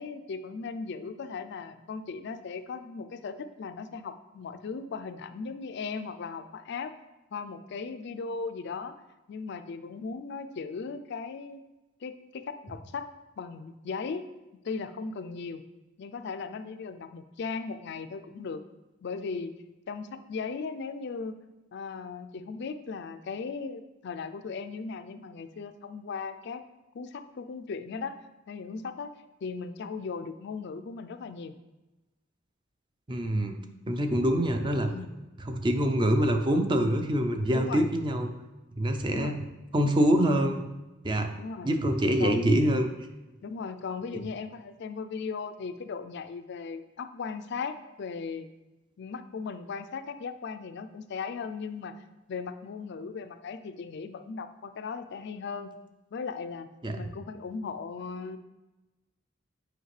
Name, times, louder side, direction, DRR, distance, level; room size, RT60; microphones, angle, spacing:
voice 1, 0.0-6.9 7.3-8.9 9.3-11.6 12.0-13.1 13.4-14.3 14.6-15.6 16.0-18.6 19.0-19.5 19.9-21.4 21.7-26.6 26.9-28.2 28.5-29.1 29.4-31.5 34.8-35.1 37.5-37.9 39.1-39.4 41.4-41.7 42.2-42.6 43.4-48.5 49.0-55.7 56.1-56.7 57.0-58.4, left 5 dB, 60° left, 10 dB, 0.4 m, -37 dB
voice 2, 33.1-33.5 33.9-34.9 35.4-38.3 38.8-39.4 39.7-40.6 41.0-41.3 41.6-42.9 56.8-57.0, equal, 25° right, 6 dB, 0.5 m, -25 dB
7.9 x 5.1 x 3.2 m, 1.1 s
head